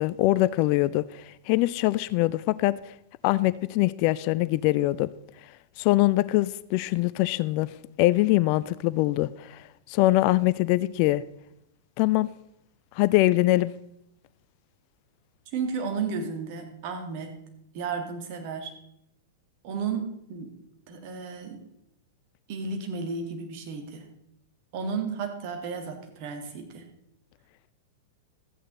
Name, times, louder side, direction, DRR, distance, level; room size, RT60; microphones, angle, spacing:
voice 1, 0.0-2.8 3.2-5.1 5.8-7.7 8.0-11.2 12.0-12.3 13.0-13.7, left 18 dB, 45° left, 0.3 m, -23 dB
voice 2, 15.5-17.4 17.7-18.7 19.6-20.5 20.9-21.6 22.5-24.1 24.7-26.9, right 5 dB, 45° right, 2.0 m, -33 dB
13.5 x 8.7 x 4.0 m
figure-of-eight pair, 100°, 0 cm